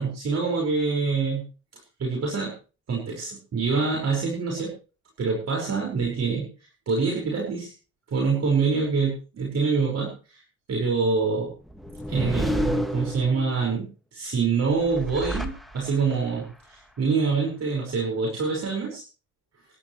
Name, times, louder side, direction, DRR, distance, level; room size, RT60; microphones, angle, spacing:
voice 1, 0.0-1.4 2.0-2.5 2.9-4.7 5.2-6.5 6.9-7.7 8.1-10.4 10.7-11.5 12.1-19.0, right 4 dB, 60° right, -1 dB, 5.3 m, -25 dB
sound 1, 11.7-13.7 14.7-16.2, equal, ahead, 1.8 m, -30 dB
26.5 x 11.5 x 3.2 m, 0.36 s
cardioid pair, 90°, 30 cm